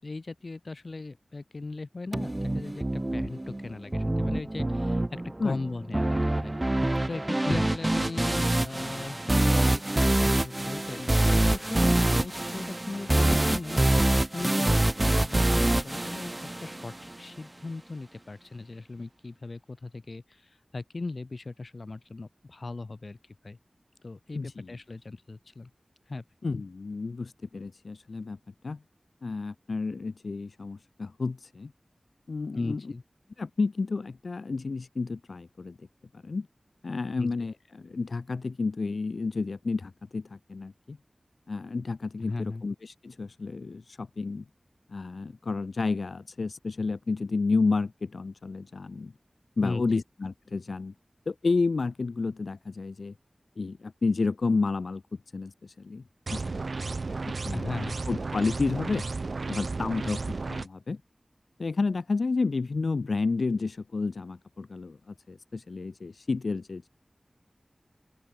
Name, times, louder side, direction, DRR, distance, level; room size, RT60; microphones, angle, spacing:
voice 1, 0.0-6.6 7.1-23.2 23.4-23.6 24.0-25.7 26.1-26.2 32.5-33.0 37.2-37.3 42.2-42.6 49.6-50.0 57.5-58.0, left 3 dB, 60° left, 2.5 m, -38 dB
sound 1, 2.1-17.1, right 1 dB, 25° right, 0.4 m, -25 dB
voice 2, 24.3-24.7 26.4-28.4 28.6-28.8 29.2-31.7 32.3-32.8 33.4-35.9 36.1-36.5 36.8-41.0 41.5-44.4 44.9-49.1 49.6-50.9 51.3-53.1 53.6-55.0 55.3-56.0 56.3-56.6 57.5-57.7 58.1-59.0 59.5-60.2 60.5-61.0 61.6-66.9, left 4 dB, 80° left, 1.1 m, -31 dB
sound 2, 56.3-60.7, right 3 dB, 75° right, 0.7 m, -33 dB
open air
wide cardioid pair, 65°, 0 cm